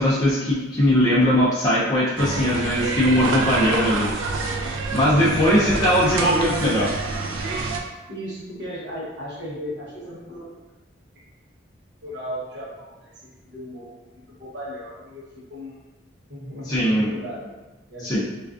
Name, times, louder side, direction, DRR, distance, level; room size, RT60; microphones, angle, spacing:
voice 1, 0.0-4.1 4.9-6.9 16.6-17.1 18.0-18.2, equal, 20° left, -8 dB, 0.4 m, -20 dB
sound 1, 2.2-7.8, right 3 dB, 85° right, 0.3 m, -27 dB
voice 2, 5.3-6.0 8.1-10.5 12.0-13.1 13.5-15.8 16.3-17.5 17.9-18.2, equal, 65° right, -6 dB, 0.8 m, -35 dB
2.4 x 2.3 x 2.3 m, 1.1 s
head